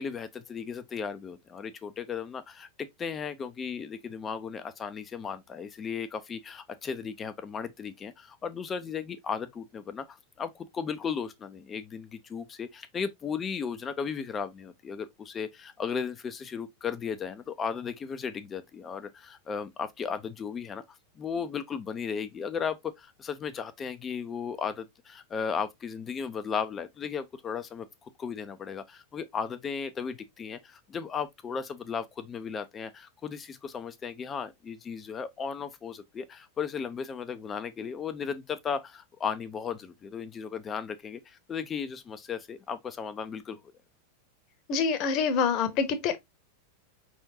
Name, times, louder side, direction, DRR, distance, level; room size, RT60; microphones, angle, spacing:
voice 1, 0.0-20.8 21.2-43.6, left 6 dB, 20° left, 0.5 m, -35 dB
voice 2, 44.7-46.2, left 5 dB, 40° left, 1.0 m, -26 dB
5.2 x 3.6 x 2.7 m
figure-of-eight pair, 90°, 0 cm